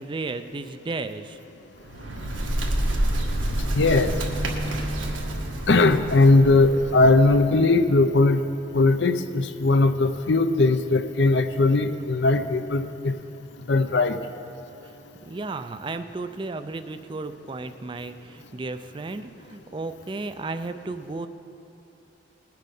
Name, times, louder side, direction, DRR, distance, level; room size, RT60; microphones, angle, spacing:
voice 1, 0.0-1.4 15.2-21.3, right 3 dB, 25° right, 9 dB, 0.4 m, -34 dB
Bird, 1.7-7.5, right 1 dB, 85° right, 1.5 m, -28 dB
voice 2, 3.7-4.1 5.7-8.4 8.7-13.1 13.7-14.2, left 2 dB, 65° left, 10 dB, 0.6 m, -19 dB
20.0 x 7.5 x 5.4 m, 3.0 s
head